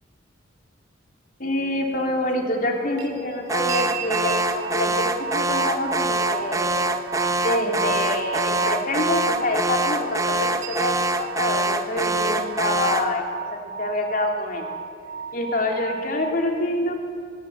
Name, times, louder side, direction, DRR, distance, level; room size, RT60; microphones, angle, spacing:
voice 1, 1.4-6.7 7.4-13.2 13.5-14.7 15.3-16.9, left 1 dB, 45° left, 1 dB, 3.5 m, -26 dB
sound 1, 3.0-16.3, right 6 dB, 70° right, 2.3 m, -34 dB
Alarm, 3.5-13.2, right 2 dB, 15° right, 0.9 m, -25 dB
23.0 x 19.5 x 8.8 m, 2.3 s
head